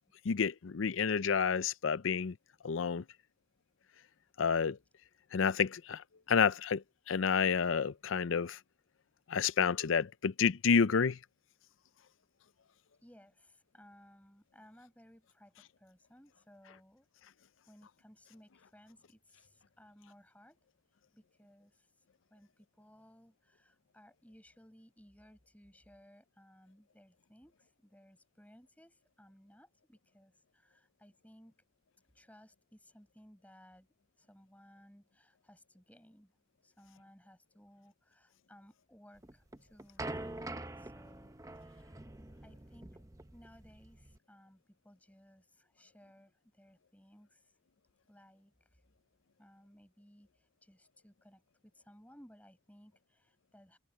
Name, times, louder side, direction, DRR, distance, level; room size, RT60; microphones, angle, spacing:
voice 1, 0.2-2.3 2.6-3.0 4.4-4.8 5.3-8.6 9.3-11.2, left 6 dB, 80° left, 0.5 m, -30 dB
voice 2, 13.0-17.1 17.7-20.6 21.1-22.0 22.3-31.6 32.1-33.9 34.2-42.0 42.4-43.0 43.3-47.6 48.1-48.9 49.4-53.8, equal, 5° left, 6.3 m, -61 dB
sound 1, 39.2-44.2, right 2 dB, 15° right, 0.7 m, -45 dB
head